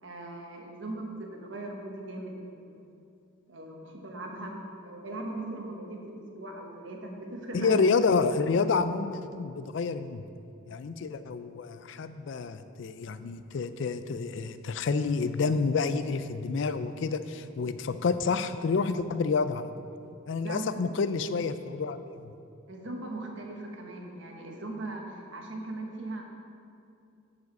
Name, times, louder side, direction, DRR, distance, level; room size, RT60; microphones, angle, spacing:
voice 1, 0.0-2.9 3.5-4.5 4.8-7.8 20.4-20.7 22.7-26.2, right 2 dB, 65° right, 1 dB, 1.2 m, -39 dB
voice 2, 7.5-10.2 10.7-19.7 20.3-22.3, left 4 dB, 60° left, 12 dB, 0.4 m, -29 dB
10.5 x 4.8 x 5.3 m, 2.5 s
head